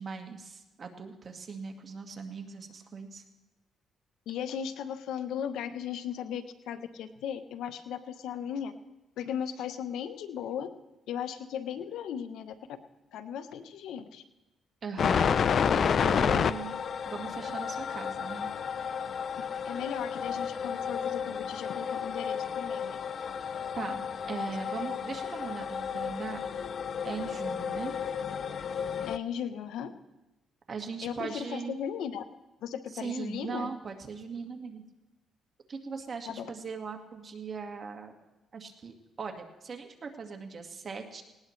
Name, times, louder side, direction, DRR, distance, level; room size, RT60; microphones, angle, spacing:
voice 1, 0.0-3.2 14.8-16.7 17.1-18.5 23.8-26.5 27.0-28.0 30.7-31.8 32.9-34.8 35.7-38.1 38.5-41.2, right 5 dB, 45° right, 4 dB, 1.8 m, -39 dB
voice 2, 4.3-8.7 9.2-10.7 11.1-12.5 13.1-14.2 19.6-23.0 29.1-29.9 31.0-32.2 32.6-33.7 36.3-36.5, left 8 dB, 85° left, 11 dB, 0.8 m, -36 dB
sound 1, 15.0-29.2, left 7 dB, 55° left, 0.5 m, -31 dB
18.5 x 18.5 x 3.2 m, 1.0 s
cardioid pair, 90°, 0 cm